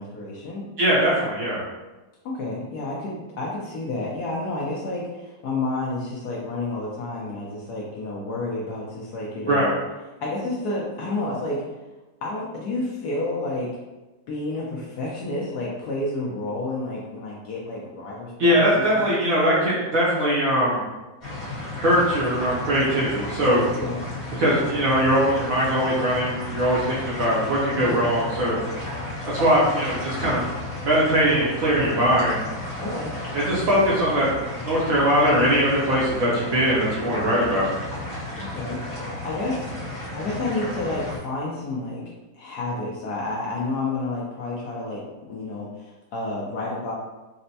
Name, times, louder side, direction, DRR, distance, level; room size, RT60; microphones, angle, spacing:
voice 1, 0.0-0.7 2.2-9.7 10.2-11.6 12.2-13.7 14.3-19.2 23.7-24.0 27.7-28.1 32.8-33.2 38.4-39.7 40.1-42.0 42.3-45.0 45.3-46.9, left 2 dB, 70° left, -4 dB, 1.0 m, -30 dB
voice 2, 0.8-1.6 9.5-9.7 18.4-20.8 21.7-23.6 24.4-28.6 29.3-30.4 30.8-32.5 33.3-34.3 34.6-37.7, equal, 60° right, -6 dB, 0.9 m, -21 dB
sound 1, 21.2-41.2, left 2 dB, 30° left, 1.0 m, -33 dB
4.2 x 2.0 x 2.7 m, 1.1 s
omnidirectional pair, 2.1 m